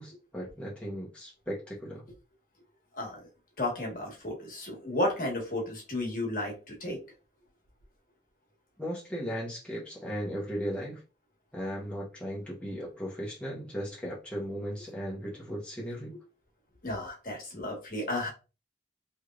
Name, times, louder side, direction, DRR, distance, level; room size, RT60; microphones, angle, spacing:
voice 1, 0.0-2.0 8.8-11.0 11.5-16.1, equal, 5° left, -5 dB, 0.9 m, -36 dB
voice 2, 3.6-7.0 16.8-18.3, left 1 dB, 50° left, -2 dB, 1.4 m, -33 dB
3.3 x 3.0 x 2.4 m, 0.31 s
head